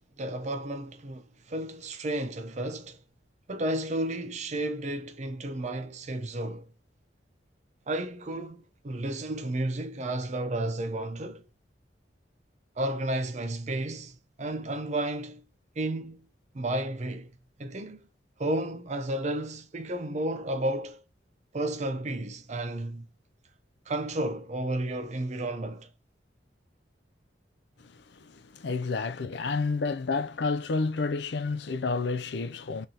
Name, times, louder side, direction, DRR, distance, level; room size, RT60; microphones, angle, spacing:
voice 1, 0.2-3.0 3.5-6.7 7.9-11.5 12.8-15.4 15.8-16.3 16.5-18.1 18.4-21.0 21.5-23.1 23.9-25.9, right 1 dB, 40° right, 0.6 m, -32 dB
voice 2, 27.8-32.9, left 4 dB, 65° left, 0.5 m, -30 dB
3.8 x 3.3 x 2.8 m
head